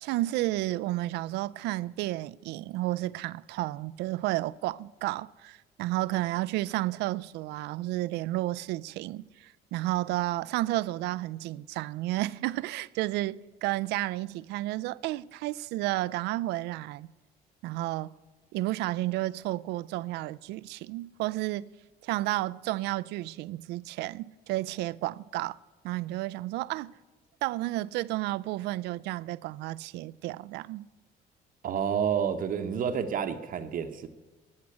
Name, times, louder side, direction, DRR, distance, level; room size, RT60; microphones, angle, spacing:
voice 1, 0.0-17.1 17.6-18.2 18.5-21.7 22.0-25.6 25.8-27.0 27.4-30.8, right 17 dB, 85° right, 0.4 m, -32 dB
voice 2, 31.6-34.1, right 7 dB, 55° right, 0.9 m, -29 dB
12.0 x 7.5 x 9.6 m
cardioid pair, 110°, 17 cm